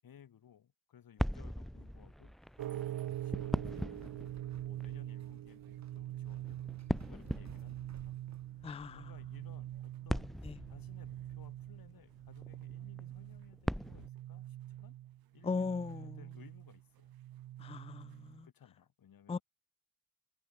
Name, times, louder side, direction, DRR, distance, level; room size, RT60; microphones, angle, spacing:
voice 1, 0.0-6.7 7.1-15.0 15.3-17.2 18.4-19.4, left 9 dB, 75° left, 7.0 m, -61 dB
sound 1, 1.2-14.1, equal, ahead, 0.9 m, -41 dB
sound 2, 2.4-8.5, right 5 dB, 50° right, 6.5 m, -58 dB
sound 3, 2.6-18.4, right 13 dB, 85° right, 1.4 m, -44 dB
voice 2, 8.6-9.1 10.4-10.6 15.4-16.2 17.6-18.5 19.3-19.4, left 4 dB, 15° left, 0.5 m, -38 dB
supercardioid pair, 50°, 35 cm